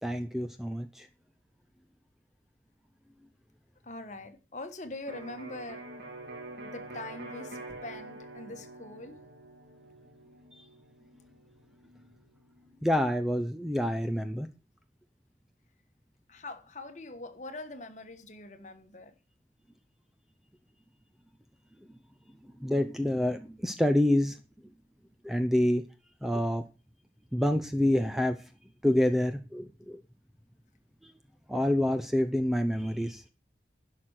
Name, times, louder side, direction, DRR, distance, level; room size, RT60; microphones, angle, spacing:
voice 1, 0.0-1.1 12.8-14.5 22.6-24.4 25.2-25.8 26.2-26.6 27.3-28.4 28.8-30.0 31.5-33.3, left 1 dB, ahead, 0.6 m, -27 dB
voice 2, 3.8-5.9 6.6-9.2 16.3-19.1, left 2 dB, 40° left, 1.3 m, -43 dB
Electric guitar, 5.1-12.8, right 2 dB, 65° right, 2.1 m, -46 dB
11.5 x 5.9 x 6.4 m
head